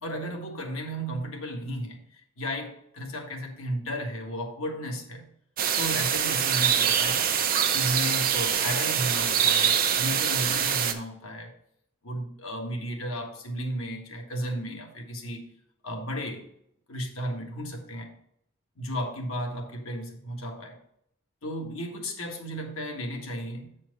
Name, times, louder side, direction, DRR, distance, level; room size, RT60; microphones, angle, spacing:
voice 1, 0.0-5.2 5.8-7.3 7.7-11.5 12.0-15.4 15.8-16.5 16.9-18.1 18.8-20.8 21.4-23.7, equal, 90° left, 2 dB, 1.7 m, -34 dB
sound 1, 5.6-10.9, right 8 dB, 45° right, 0.7 m, -24 dB
7.6 x 4.4 x 5.3 m, 0.73 s
head